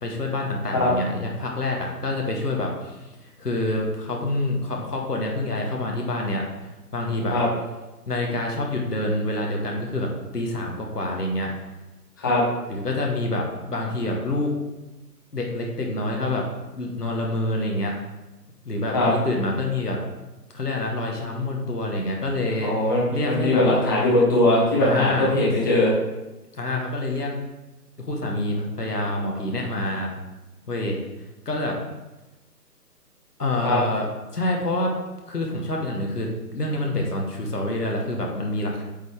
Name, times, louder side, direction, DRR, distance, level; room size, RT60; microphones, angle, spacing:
voice 1, 0.0-3.1 3.4-6.4 6.9-7.4 8.1-11.5 12.7-14.5 15.3-16.4 16.7-17.9 18.6-20.0 20.5-22.7 23.1-23.6 24.8-25.3 26.5-27.3 28.0-30.1 30.7-31.0 31.4-31.8 33.4-34.1 34.3-34.9 35.3-38.8, left 1 dB, 70° left, 0 dB, 1.4 m, -27 dB
voice 2, 22.6-25.9 33.6-33.8, left 1 dB, 15° left, -6 dB, 0.9 m, -20 dB
8.3 x 4.1 x 3.5 m, 1.0 s
figure-of-eight pair, 140°, 48 cm